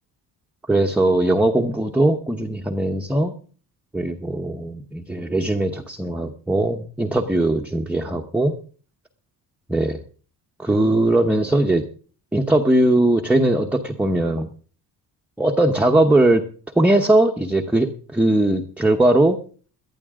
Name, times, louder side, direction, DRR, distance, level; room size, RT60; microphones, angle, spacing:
voice 1, 0.7-3.3 3.9-8.6 9.7-10.0 10.6-11.8 12.3-14.5 15.4-16.4 16.8-19.4, right 1 dB, 5° right, 2 dB, 0.9 m, -19 dB
18.0 x 12.0 x 3.7 m, 0.41 s
cardioid pair, 160°, 40 cm